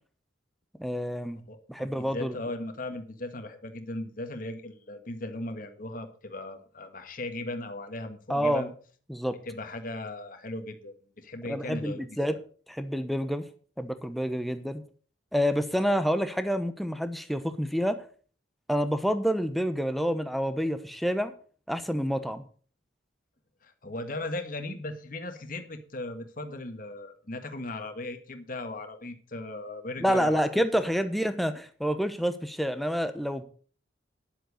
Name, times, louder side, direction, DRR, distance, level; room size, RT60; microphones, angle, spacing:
voice 1, 0.8-1.4 1.7-2.4 8.3-8.7 9.1-9.4 11.4-12.4 12.7-13.5 13.8-14.8 15.3-18.1 18.7-21.3 21.7-22.4 30.0-33.4, equal, ahead, 9 dB, 0.9 m, -28 dB
voice 2, 1.5-8.7 9.4-12.0 12.3-12.4 23.6-30.6, left 2 dB, 45° left, 7 dB, 1.5 m, -37 dB
10.5 x 7.8 x 6.5 m, 0.42 s
head